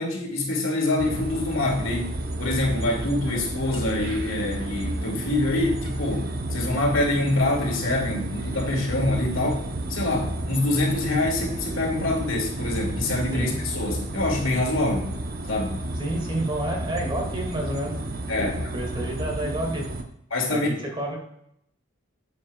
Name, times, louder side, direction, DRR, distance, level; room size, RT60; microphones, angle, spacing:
voice 1, 0.0-9.6 9.9-15.2 15.5-15.8 18.3-18.7 20.3-20.7, left 2 dB, 75° left, 0 dB, 2.2 m, -25 dB
sound 1, 1.0-20.0, right 1 dB, 45° right, 0.8 m, -32 dB
voice 2, 16.0-18.0 18.4-19.9 20.5-20.6 21.0-21.2, right 1 dB, 25° right, 0 dB, 2.0 m, -29 dB
9.3 x 8.2 x 2.3 m, 0.74 s
head